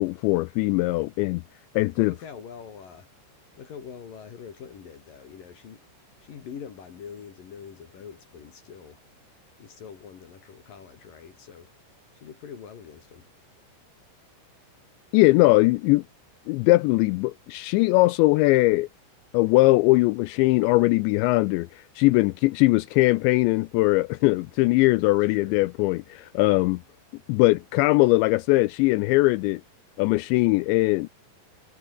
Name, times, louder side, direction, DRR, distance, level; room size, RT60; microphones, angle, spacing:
voice 1, 0.0-1.4 1.8-2.1 15.1-16.0 16.5-18.9 19.3-26.8 27.3-29.6 30.0-31.1, left 21 dB, 85° left, 2.6 m, -21 dB
voice 2, 2.0-3.1 3.5-5.8 6.2-9.0 9.6-11.7 12.1-13.3 22.1-22.3 25.0-25.7, left 7 dB, 50° left, 3.6 m, -44 dB
omnidirectional pair, 5.6 m